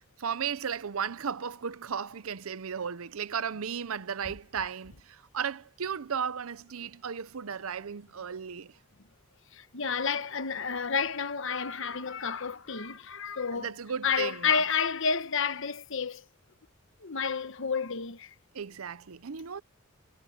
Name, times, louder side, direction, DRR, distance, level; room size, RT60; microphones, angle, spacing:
voice 1, 0.2-8.8 13.5-14.6 18.5-19.6, right 7 dB, 75° right, 0.7 m, -35 dB
voice 2, 9.5-13.7 14.0-16.2 17.0-18.3, left 6 dB, 60° left, 1.1 m, -30 dB
head